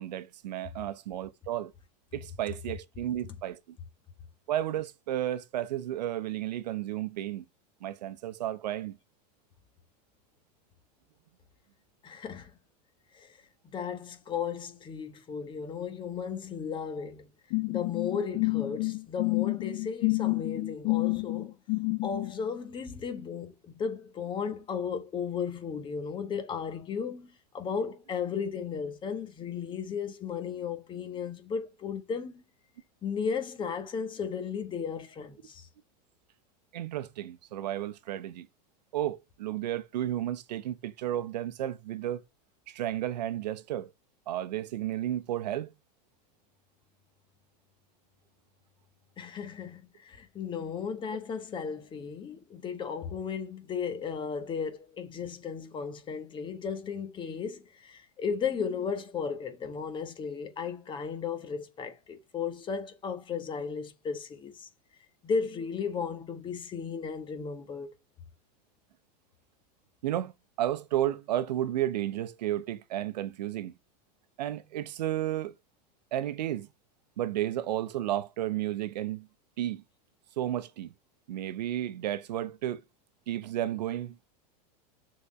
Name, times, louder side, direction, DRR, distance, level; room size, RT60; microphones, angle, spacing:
voice 1, 0.0-1.7 2.1-3.8 4.5-7.4 7.8-9.0 36.7-38.5 38.9-42.2 42.7-43.9 44.3-45.7 70.0-70.3 70.6-73.7 74.4-75.5 76.1-76.7 77.2-79.3 79.6-79.8 80.4-80.9 81.3-82.8 83.3-84.2, right 12 dB, 90° right, 0.9 m, -32 dB
voice 2, 12.0-12.5 13.1-13.4 13.6-17.3 17.7-21.6 22.0-32.4 33.0-35.7 49.2-64.7 65.2-67.9, left 6 dB, 25° left, 1.5 m, -35 dB
sound 1, 17.5-22.3, left 32 dB, 50° left, 0.5 m, -29 dB
6.8 x 4.2 x 5.3 m
supercardioid pair, 135°, 21 cm